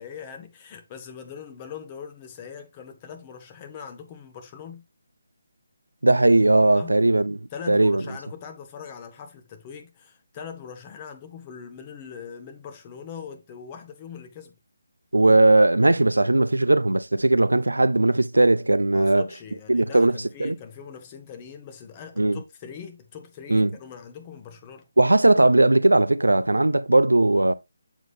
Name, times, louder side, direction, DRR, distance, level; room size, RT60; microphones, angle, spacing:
voice 1, 0.0-4.8 6.7-7.0 7.5-14.5 18.9-24.9, left 7 dB, 25° left, 1.1 m, -41 dB
voice 2, 6.0-7.4 7.7-8.0 15.1-19.3 19.7-20.6 22.2-22.4 23.5-23.7 25.0-27.5, right 2 dB, 90° right, 0.5 m, -18 dB
7.2 x 3.9 x 3.3 m
figure-of-eight pair, 155°, 0 cm